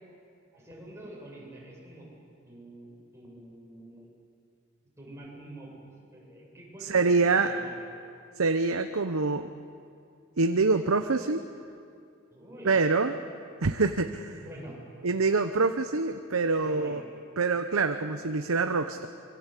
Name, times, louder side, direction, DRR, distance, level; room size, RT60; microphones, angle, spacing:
voice 1, 0.5-2.1 2.5-4.1 5.0-7.8 12.3-12.8 14.3-14.8 16.6-17.0, right 1 dB, 15° right, -4 dB, 7.7 m, -46 dB
voice 2, 6.8-7.5 8.4-9.5 10.4-11.4 12.6-13.1 13.6-14.4 15.0-17.0 17.4-19.1, right 4 dB, 75° right, 7 dB, 0.9 m, -25 dB
26.0 x 24.0 x 8.4 m, 2.4 s
head